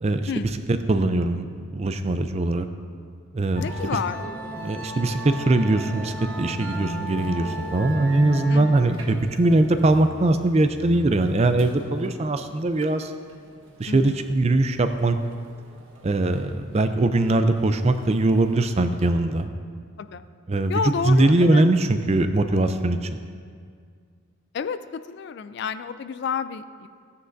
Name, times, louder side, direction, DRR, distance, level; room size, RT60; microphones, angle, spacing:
voice 1, 0.0-1.5 1.7-2.7 3.3-4.0 4.6-13.1 13.8-15.2 16.0-19.5 20.5-23.1, right 2 dB, 30° right, 9 dB, 0.4 m, -21 dB
voice 2, 3.6-4.2 8.5-8.7 13.9-14.2 20.0-20.2 20.7-21.6 24.5-26.9, left 6 dB, 55° left, 12 dB, 0.3 m, -30 dB
Musical instrument, 3.6-19.1, right 1 dB, 70° right, 1.2 m, -37 dB
15.5 x 9.6 x 2.6 m, 2.1 s
head